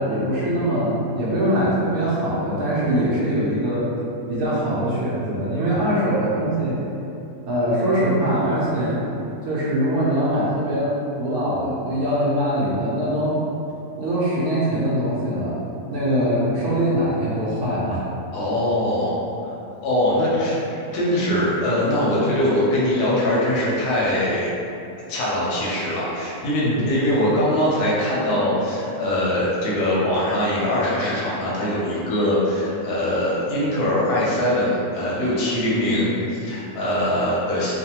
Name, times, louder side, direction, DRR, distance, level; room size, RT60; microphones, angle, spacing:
voice 1, 0.0-3.9 4.3-6.8 7.4-8.9 9.5-13.4 14.0-15.6 15.9-18.0 26.6-26.9, equal, 75° right, -7 dB, 1.0 m, -22 dB
voice 2, 18.3-19.2 19.4-19.5 19.8-20.6 20.9-24.5 25.1-37.7, left 1 dB, 90° left, -7 dB, 1.3 m, -22 dB
3.2 x 2.2 x 2.8 m, 2.8 s
omnidirectional pair, 1.6 m